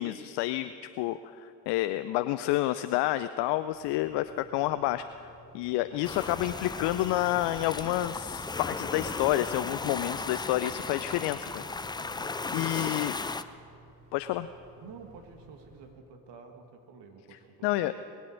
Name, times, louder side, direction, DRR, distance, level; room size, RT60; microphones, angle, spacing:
voice 1, 0.0-5.0 5.5-11.6 12.5-13.1 14.1-14.5 17.6-17.9, left 15 dB, 55° left, 12 dB, 0.6 m, -29 dB
sound 1, 3.6-15.9, right 2 dB, 85° right, 3.7 m, -57 dB
sound 2, 6.0-13.4, left 3 dB, 10° left, 0.4 m, -36 dB
voice 2, 12.0-12.6 14.8-17.9, right 5 dB, 55° right, 5 dB, 1.8 m, -50 dB
20.5 x 8.3 x 6.5 m, 2.5 s
figure-of-eight pair, 45°, 50 cm